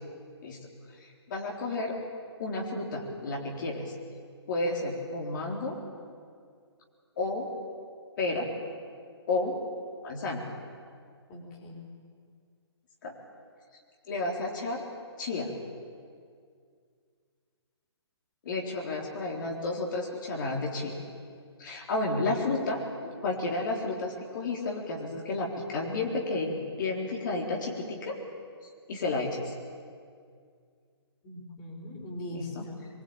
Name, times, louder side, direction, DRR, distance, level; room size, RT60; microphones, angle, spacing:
voice 1, 1.0-2.0 2.4-3.9 4.5-5.8 7.2-7.5 8.2-8.5 9.3-9.6 10.0-10.5 13.0-13.2 14.1-14.8 15.2-15.5 18.4-21.0 21.6-22.9 23.2-28.2 28.9-29.5 32.3-32.6, left 2 dB, 45° left, -1 dB, 3.9 m, -31 dB
voice 2, 11.3-11.9 22.9-23.1 31.2-32.9, left 1 dB, 25° left, 0 dB, 5.2 m, -41 dB
23.0 x 22.5 x 9.0 m, 2.2 s
figure-of-eight pair, 135°, 14 cm